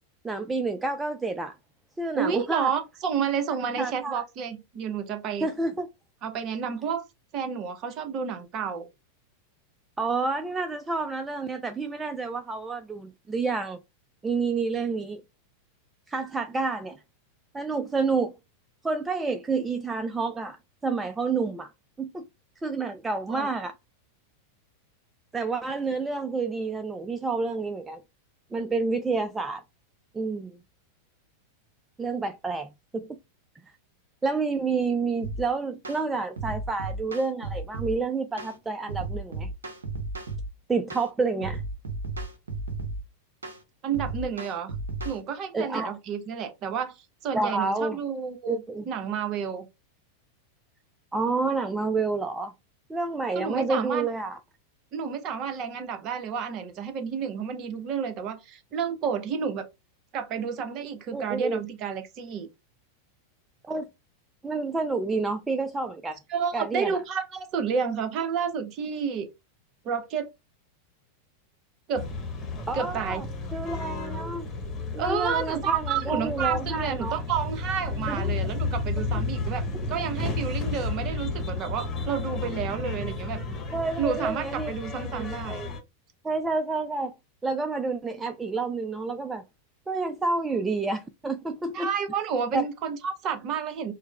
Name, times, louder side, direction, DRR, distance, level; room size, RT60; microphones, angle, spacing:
voice 1, 0.2-1.6 2.0-2.7 3.8-4.2 5.4-5.9 10.0-13.8 14.2-15.2 16.1-17.0 17.5-18.3 18.8-20.6 20.8-21.7 22.0-22.2 22.6-23.7 25.3-28.0 28.5-29.6 30.1-30.6 32.0-33.2 34.2-39.5 40.7-41.6 45.5-46.0 47.3-48.0 48.5-48.9 51.1-52.5 52.9-54.4 61.1-61.6 63.6-63.9 64.4-66.2 66.5-67.0 72.7-73.3 73.5-74.5 74.9-77.2 78.1-78.3 80.0-80.1 83.7-84.7 85.0-85.7 86.2-87.1 87.4-89.4 89.9-91.9 92.5-92.6, right 3 dB, 10° right, 0.3 m, -29 dB
voice 2, 2.1-5.5 6.2-7.0 7.3-8.9 23.3-23.5 43.8-44.7 45.0-49.7 53.3-54.1 54.9-59.6 60.1-62.5 66.3-69.3 69.8-70.3 71.9-72.1 72.7-73.2 75.0-79.6 79.9-83.4 84.0-85.6 91.7-93.9, right 7 dB, 35° right, 0.7 m, -30 dB
sound 1, 35.2-35.4 35.8-36.0 36.4-38.0 38.4-38.6 38.9-40.5 40.9-41.1 41.4-43.0 43.4-43.6 43.9-45.2, right 3 dB, 70° right, 0.7 m, -34 dB
sound 2, 72.0-85.8, left 3 dB, 20° left, 1.1 m, -32 dB
4.6 x 2.0 x 2.3 m
figure-of-eight pair, 90°, 0 cm